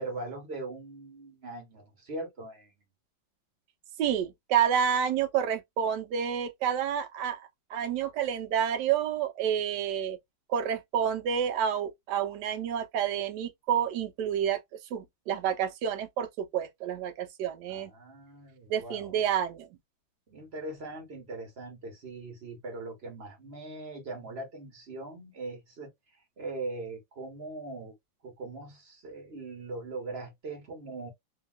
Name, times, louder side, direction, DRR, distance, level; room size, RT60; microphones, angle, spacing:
voice 1, 0.0-2.7 17.7-19.2 20.3-25.9 26.4-27.9 28.2-31.1, right 2 dB, 40° right, 1.1 m, -40 dB
voice 2, 4.0-10.2 10.5-14.6 14.9-17.9 18.7-19.7, right 8 dB, 70° right, 1.2 m, -29 dB
2.8 x 2.8 x 2.2 m
omnidirectional pair, 2.1 m